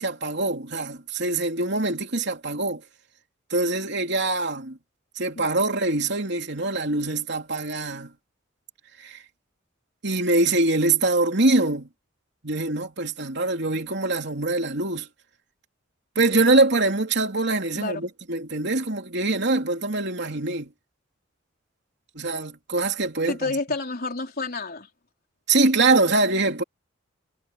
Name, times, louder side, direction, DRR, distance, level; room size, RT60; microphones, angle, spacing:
voice 1, 0.0-2.8 3.5-4.8 5.1-8.1 9.0-9.2 10.0-11.9 12.4-15.1 16.1-20.7 22.1-23.6 25.5-26.6, right 2 dB, 60° right, 3.3 m, -24 dB
voice 2, 23.2-24.9, left 3 dB, 50° left, 4.2 m, -29 dB
head